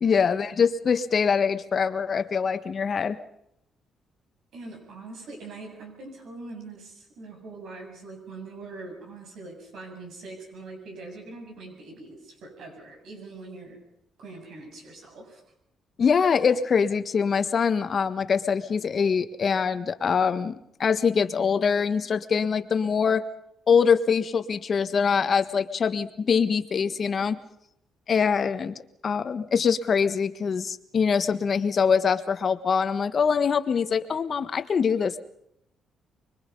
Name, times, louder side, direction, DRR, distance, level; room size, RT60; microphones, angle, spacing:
voice 1, 0.0-3.2 16.0-20.5 20.8-23.2 23.7-27.4 28.1-35.2, left 6 dB, 45° left, 10 dB, 1.4 m, -24 dB
voice 2, 4.5-13.8 14.2-15.4 27.2-27.3, right 3 dB, 70° right, 3 dB, 7.6 m, -42 dB
25.5 x 22.5 x 5.4 m, 0.77 s
cardioid pair, 90°, 0 cm